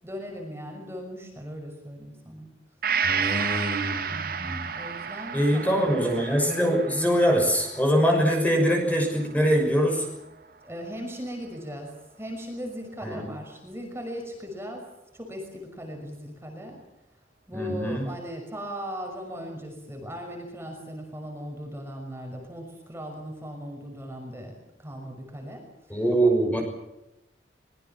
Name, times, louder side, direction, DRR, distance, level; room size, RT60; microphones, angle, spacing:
voice 1, 0.0-2.5 4.1-6.0 10.6-11.9 12.2-14.9 15.1-16.8 17.5-24.5 24.8-26.0, equal, 15° right, 2 dB, 5.9 m, -38 dB
Gong, 2.8-10.5 10.9-11.0, right 6 dB, 55° right, 1.9 m, -32 dB
voice 2, 3.0-4.7 5.3-10.1 13.0-13.3 17.5-18.1 25.9-26.6, equal, 10° left, 2 dB, 6.2 m, -23 dB
24.5 x 22.0 x 7.3 m, 0.91 s
head